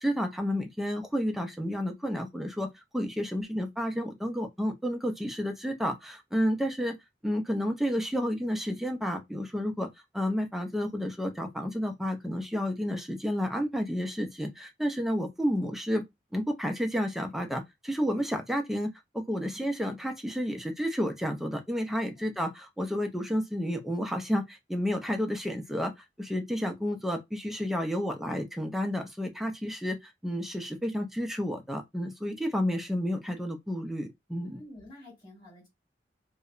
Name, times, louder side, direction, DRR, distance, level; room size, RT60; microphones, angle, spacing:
voice 1, 0.0-7.0 7.2-9.9 10.1-16.0 16.3-25.9 26.2-34.6, equal, ahead, 0.4 m, -31 dB
voice 2, 22.2-22.5 34.4-35.7, left 1 dB, 25° left, 1.7 m, -49 dB
2.7 x 2.0 x 2.4 m
head